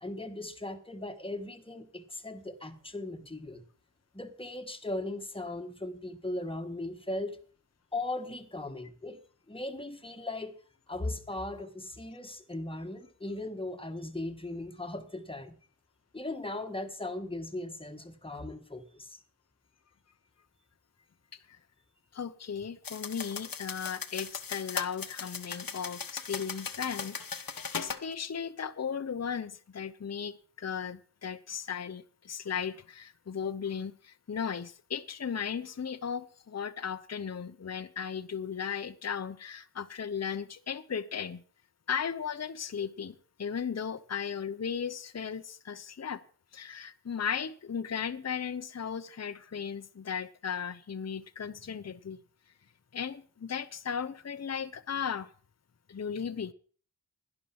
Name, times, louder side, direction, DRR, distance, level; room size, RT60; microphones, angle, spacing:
voice 1, 0.0-3.6 4.1-7.4 7.9-9.2 9.5-10.6 10.9-15.6 16.1-19.2, left 2 dB, 15° left, 1.5 m, -38 dB
voice 2, 22.1-41.4 41.9-46.2 46.5-52.2 52.9-55.3 55.9-56.5, left 7 dB, 40° left, 0.8 m, -36 dB
sound 1, 22.8-28.0, left 6 dB, 55° left, 1.1 m, -38 dB
11.5 x 11.0 x 5.8 m
wide cardioid pair, 105°, 40 cm